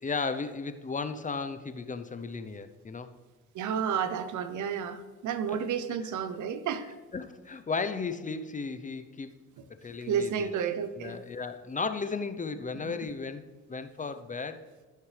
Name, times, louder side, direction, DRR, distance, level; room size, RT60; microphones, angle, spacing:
voice 1, 0.0-3.1 7.1-9.4 9.8-10.5 11.0-13.4 13.7-14.7, left 4 dB, 25° left, 10 dB, 0.7 m, -35 dB
voice 2, 3.5-6.9 10.1-11.2 12.8-12.9, right 7 dB, 75° right, 11 dB, 0.8 m, -31 dB
16.0 x 6.6 x 3.3 m, 1.3 s
cardioid pair, 90°, 30 cm